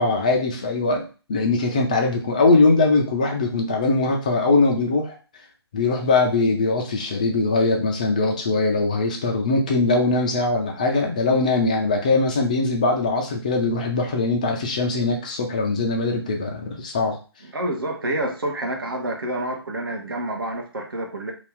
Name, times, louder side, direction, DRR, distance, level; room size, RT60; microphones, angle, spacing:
voice 1, 0.0-5.1 5.7-17.2, left 3 dB, 15° left, 2 dB, 0.3 m, -21 dB
voice 2, 17.5-21.3, right 1 dB, 55° right, 2 dB, 0.8 m, -28 dB
2.7 x 2.3 x 3.4 m, 0.35 s
figure-of-eight pair, 150°, 14 cm